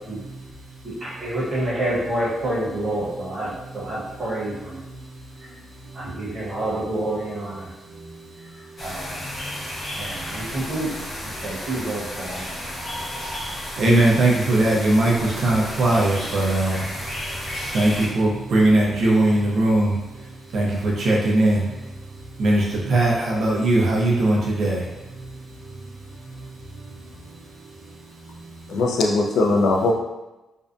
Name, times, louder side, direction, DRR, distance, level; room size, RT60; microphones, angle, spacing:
voice 1, 0.8-4.8 5.9-7.7 8.8-9.2 10.0-10.9 11.2-12.4, right 1 dB, 35° right, -9 dB, 1.0 m, -28 dB
sound 1, 8.8-18.1, left 1 dB, 35° left, 0.6 m, -33 dB
voice 2, 13.8-16.8 17.7-19.9 20.5-21.6 22.4-24.8, right 2 dB, 55° right, -4 dB, 0.5 m, -19 dB
voice 3, 28.7-29.9, left 2 dB, 80° left, 1 dB, 0.3 m, -20 dB
2.5 x 2.1 x 2.4 m, 1.0 s
wide cardioid pair, 175°, 0 cm